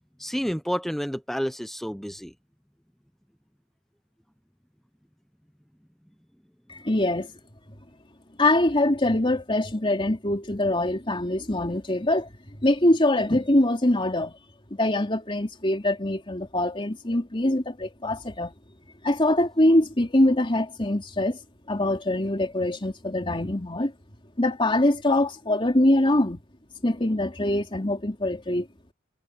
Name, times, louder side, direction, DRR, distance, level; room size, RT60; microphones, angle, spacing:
voice 1, 0.2-2.3, equal, ahead, 0.7 m, -29 dB
voice 2, 6.7-7.3 8.4-12.3 12.6-14.4 14.7-18.5 19.0-21.4 21.7-23.9 24.4-26.4 26.8-28.7, left 1 dB, 25° left, 3.2 m, -23 dB
head